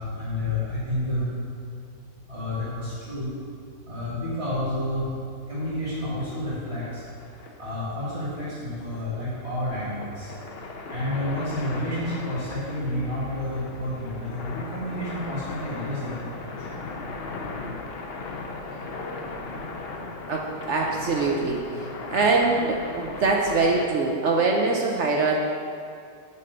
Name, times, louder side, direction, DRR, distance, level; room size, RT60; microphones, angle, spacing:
voice 1, 0.0-1.3 2.3-3.3 3.8-5.1 5.5-7.0 7.6-10.3 10.9-16.7 20.5-20.9, left 1 dB, 35° right, -9 dB, 2.1 m, -30 dB
sound 1, 5.5-23.9, left 3 dB, 65° left, 0.6 m, -38 dB
voice 2, 20.3-25.4, right 3 dB, 80° right, 0 dB, 0.6 m, -23 dB
8.4 x 4.2 x 6.6 m, 2.4 s
omnidirectional pair, 2.0 m